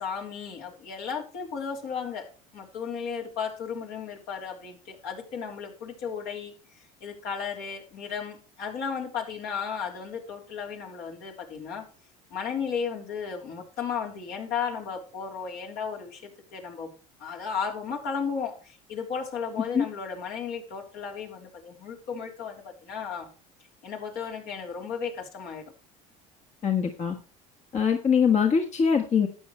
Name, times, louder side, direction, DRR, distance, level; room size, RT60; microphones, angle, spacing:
voice 1, 0.0-2.3 2.5-11.8 12.3-16.9 17.2-23.3 23.8-25.6, left 6 dB, 65° left, 1 dB, 3.6 m, -34 dB
voice 2, 26.6-27.1 27.7-29.3, left 6 dB, 40° left, 3 dB, 1.5 m, -22 dB
12.5 x 8.9 x 3.2 m, 0.36 s
supercardioid pair, 95°, 18 cm